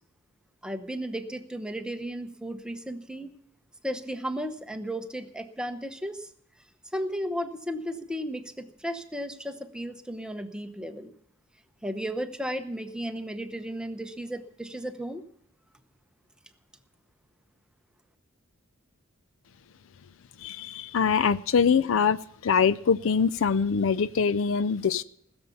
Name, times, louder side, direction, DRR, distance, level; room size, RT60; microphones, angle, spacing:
voice 1, 0.6-3.3 3.8-6.3 6.9-11.1 11.8-15.2, equal, 5° right, 7 dB, 0.9 m, -34 dB
voice 2, 20.4-22.2 22.4-25.0, left 6 dB, 65° left, 16 dB, 0.5 m, -23 dB
19.5 x 7.1 x 7.0 m, 0.68 s
head